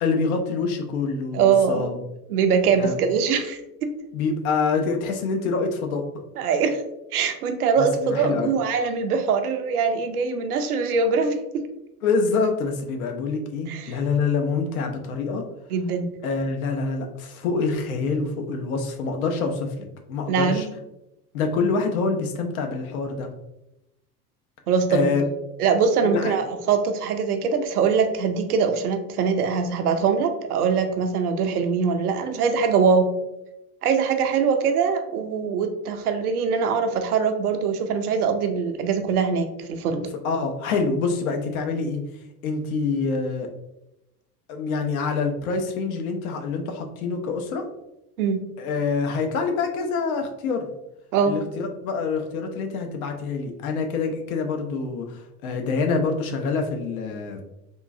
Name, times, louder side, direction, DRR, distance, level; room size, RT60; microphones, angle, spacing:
voice 1, 0.0-2.0 2.7-3.0 4.1-6.1 7.8-8.5 12.0-15.5 16.2-19.7 20.1-20.7 21.3-23.3 24.9-25.2 26.0-26.3 40.2-42.0 42.4-43.5 44.5-47.7 48.6-50.7 51.2-57.4, left 4 dB, 65° left, 4 dB, 0.7 m, -26 dB
voice 2, 1.3-1.9 2.3-3.9 6.4-6.8 7.1-11.7 13.7-14.0 15.7-16.2 20.3-20.7 24.7-25.2 25.6-33.1 33.8-40.1 48.2-48.4 51.1-51.4, right 5 dB, 75° right, 6 dB, 0.6 m, -22 dB
3.6 x 2.5 x 2.5 m, 0.89 s
figure-of-eight pair, 75°, 46 cm